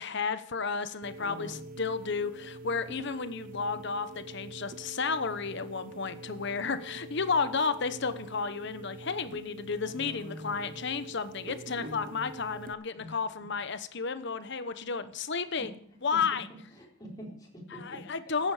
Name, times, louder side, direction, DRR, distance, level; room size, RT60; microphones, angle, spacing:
voice 1, 0.0-15.7 16.0-16.5 17.8-18.5, left 5 dB, 60° left, 12 dB, 1.0 m, -32 dB
sound 1, 1.0-12.7, right 2 dB, 45° right, 0.5 m, -46 dB
voice 2, 1.2-1.6 9.9-10.6 11.7-12.3 13.0-13.2 15.6-15.7 16.1-16.4 16.7-18.0, left 1 dB, 20° left, -3 dB, 4.2 m, -45 dB
14.5 x 10.0 x 5.0 m, 0.64 s
head